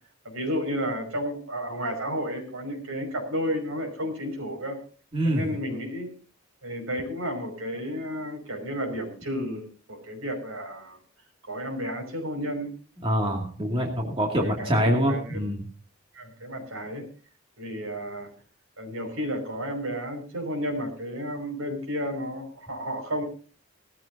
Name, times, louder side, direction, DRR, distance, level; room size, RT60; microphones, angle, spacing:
voice 1, 0.2-4.8 5.2-6.1 6.6-9.6 9.9-11.0 11.5-12.7 14.4-15.4 16.1-17.1 17.6-18.3 18.8-23.2, equal, 80° right, 4 dB, 5.8 m, -32 dB
voice 2, 5.1-5.5 13.0-15.6, equal, 25° right, 0 dB, 2.4 m, -25 dB
19.5 x 14.0 x 2.7 m, 0.38 s
head